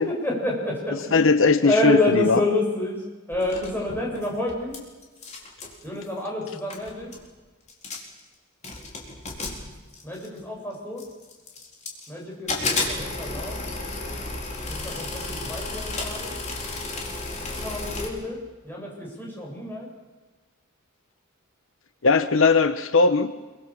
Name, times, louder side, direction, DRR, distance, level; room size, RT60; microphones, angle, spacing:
voice 1, 0.1-1.3 1.6-3.0 3.3-4.7 5.8-7.1 10.0-11.0 12.1-13.6 14.7-16.4 17.6-18.4 18.6-19.9, left 2 dB, 10° left, -2 dB, 7.5 m, -28 dB
voice 2, 0.9-2.4 22.0-23.3, left 4 dB, 65° left, 11 dB, 0.9 m, -19 dB
sound 1, 3.3-4.8 5.0-5.8 6.4-6.5 6.7-7.3 7.7-8.2 8.6-10.4 11.0-12.1 12.5-18.1, left 3 dB, 35° left, 4.3 m, -32 dB
25.5 x 23.5 x 7.3 m, 1.2 s
head